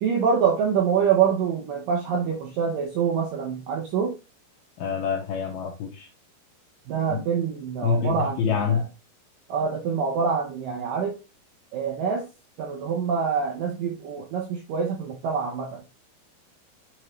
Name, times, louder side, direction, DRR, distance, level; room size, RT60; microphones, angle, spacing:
voice 1, 0.0-4.2 6.9-8.8 9.5-11.1 11.7-12.3 12.6-15.8, right 6 dB, 75° right, 2.0 m, -25 dB
voice 2, 4.8-6.1 7.1-7.2 7.8-8.9, left 6 dB, 75° left, 2.5 m, -26 dB
8.9 x 3.7 x 3.1 m
omnidirectional pair, 5.1 m